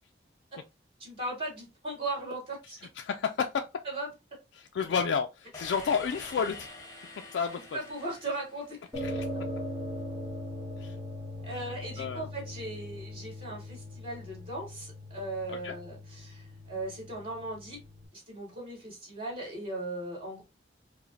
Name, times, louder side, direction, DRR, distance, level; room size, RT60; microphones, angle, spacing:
voice 1, 1.0-2.8 3.8-4.1 7.5-8.8 11.4-17.8 18.1-20.4, right 2 dB, 30° right, 2.0 m, -38 dB
voice 2, 3.0-3.6 4.5-6.7 7.3-7.8 9.0-9.3 10.8-10.9 12.0-12.2 15.5-15.8, left 6 dB, 75° left, 0.3 m, -31 dB
sound 1, 5.5-9.4, left 2 dB, 20° left, 0.9 m, -47 dB
sound 2, 8.9-18.0, left 1 dB, ahead, 2.1 m, -40 dB
4.8 x 2.1 x 2.6 m
head